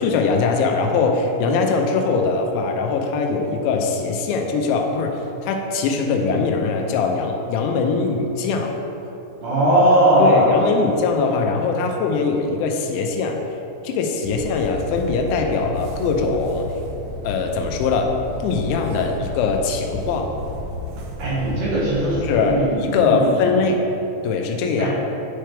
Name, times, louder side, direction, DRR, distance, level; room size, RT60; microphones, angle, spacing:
voice 1, 0.0-8.8 10.2-13.4 13.8-16.7 17.2-20.3 22.2-23.8 24.2-24.9, left 4 dB, 90° left, 3 dB, 3.0 m, -21 dB
voice 2, 9.4-10.5 21.2-23.6 24.8-24.9, right 1 dB, 60° right, -9 dB, 2.0 m, -19 dB
sound 1, 14.2-22.6, equal, 75° right, 2.3 m, -32 dB
10.0 x 4.4 x 3.4 m, 2.9 s
omnidirectional pair, 5.2 m